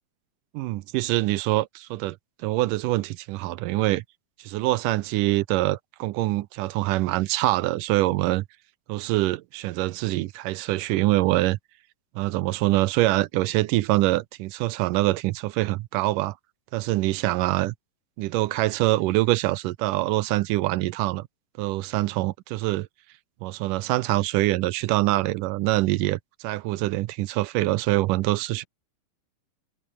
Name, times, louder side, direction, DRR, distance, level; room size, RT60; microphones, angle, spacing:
voice 1, 0.5-4.0 4.4-8.4 8.9-11.6 12.2-16.4 16.7-17.7 18.2-21.3 21.6-22.9 23.4-28.6, right 18 dB, 80° right, 2.1 m, -24 dB
omnidirectional pair, 4.1 m